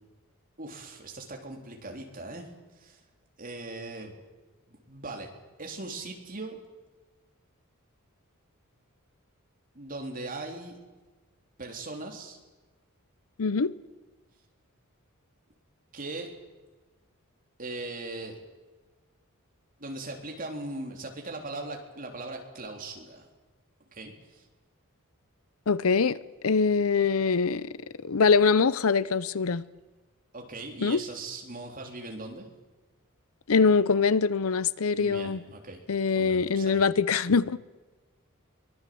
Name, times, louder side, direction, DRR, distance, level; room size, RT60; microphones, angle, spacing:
voice 1, 0.6-2.5 2.8-3.0 3.4-4.1 4.7-5.3 5.6-6.6 9.7-10.8 11.6-12.4 15.9-16.3 17.6-18.4 19.8-23.3 23.9-24.5 30.3-32.5 35.0-35.8 36.1-36.8, right 2 dB, 40° right, 3.7 m, -39 dB
voice 2, 13.4-13.7 25.7-26.2 26.4-27.7 28.0-29.6 30.8-31.0 33.5-35.4 35.9-37.6, left 5 dB, 70° left, 0.7 m, -23 dB
23.5 x 19.0 x 7.8 m
head